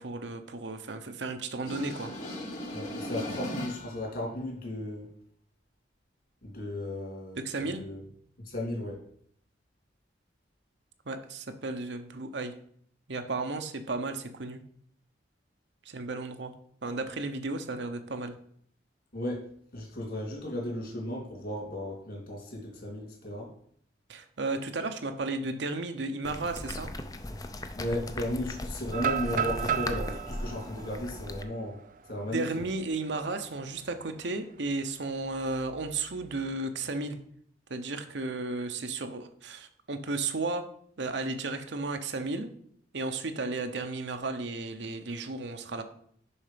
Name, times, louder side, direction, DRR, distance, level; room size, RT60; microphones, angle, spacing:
voice 1, 0.0-2.1 7.4-7.8 11.1-12.5 13.1-14.6 15.8-16.5 16.8-18.3 24.1-26.9 32.3-37.2 37.7-40.7 41.0-42.5 42.9-45.8, right 3 dB, 70° right, 7 dB, 0.8 m, -34 dB
sound 1, 1.6-4.1, left 1 dB, 40° left, 1.6 m, -37 dB
voice 2, 2.7-5.1 6.4-8.0 8.4-9.0 19.1-19.4 19.7-23.5 27.8-31.8 32.1-32.5, left 1 dB, 55° left, -1 dB, 2.9 m, -35 dB
sound 2, 26.2-31.4, left 1 dB, 20° left, 0.5 m, -38 dB
sound 3, 28.9-32.8 33.3-33.4 33.8-34.2 35.5-36.3, right 7 dB, 45° right, 0.4 m, -34 dB
7.1 x 5.6 x 5.1 m, 0.62 s
head